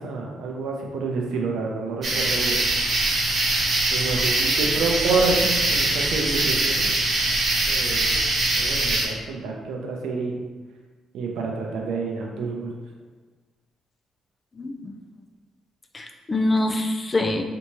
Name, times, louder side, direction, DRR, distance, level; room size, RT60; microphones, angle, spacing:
voice 1, 0.0-2.6 3.9-6.9 7.7-8.2 8.5-10.4 11.1-12.7, right 3 dB, 80° right, 0 dB, 0.5 m, -28 dB
sound 1, 2.0-9.0, right 2 dB, 50° right, 0.9 m, -23 dB
voice 2, 14.6-14.9 15.9-17.4, left 2 dB, 25° left, 4 dB, 0.4 m, -24 dB
3.4 x 2.8 x 2.9 m, 1.3 s
cardioid pair, 90°, 0 cm